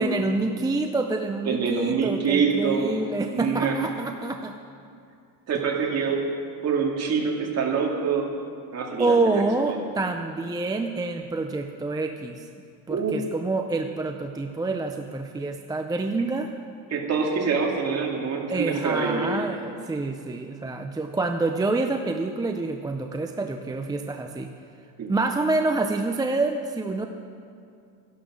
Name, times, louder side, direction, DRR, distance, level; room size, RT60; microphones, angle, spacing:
voice 1, 0.0-4.5 9.0-12.5 12.9-16.5 18.5-24.5 25.1-27.1, right 3 dB, 10° right, 5 dB, 0.5 m, -27 dB
voice 2, 1.5-2.9 3.3-3.8 5.5-6.2 6.6-8.3 8.7-9.8 12.9-13.2 16.9-19.4 25.0-25.1, right 5 dB, 40° right, -1 dB, 2.5 m, -25 dB
14.0 x 11.5 x 6.3 m, 2.4 s
cardioid pair, 130°, 40 cm